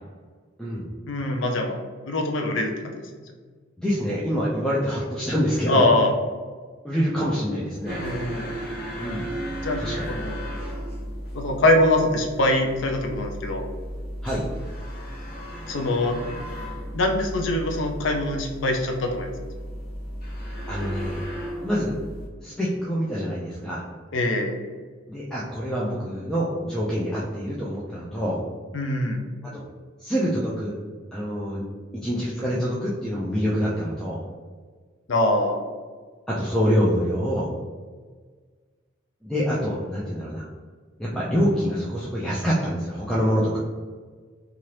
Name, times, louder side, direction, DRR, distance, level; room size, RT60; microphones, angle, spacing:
voice 1, 1.1-1.8 2.1-3.0 5.7-6.1 8.0-8.5 9.6-9.8 10.1-10.4 11.3-13.7 15.7-16.2 16.9-19.3 24.1-24.5 28.7-29.2 35.1-35.6, left 1 dB, 70° left, 3 dB, 0.5 m, -23 dB
voice 2, 3.8-5.9 6.8-8.0 9.0-9.3 9.8-10.1 14.2-14.5 20.7-21.3 21.6-22.0 22.4-23.8 25.1-28.4 29.5-29.6 30.0-30.7 31.1-31.6 31.9-34.2 36.3-37.5 39.2-40.5 41.0-43.6, equal, 5° left, -7 dB, 0.4 m, -26 dB
sound 1, 7.8-22.3, equal, 50° left, 1.0 m, -35 dB
2.8 x 2.4 x 3.1 m, 1.5 s
head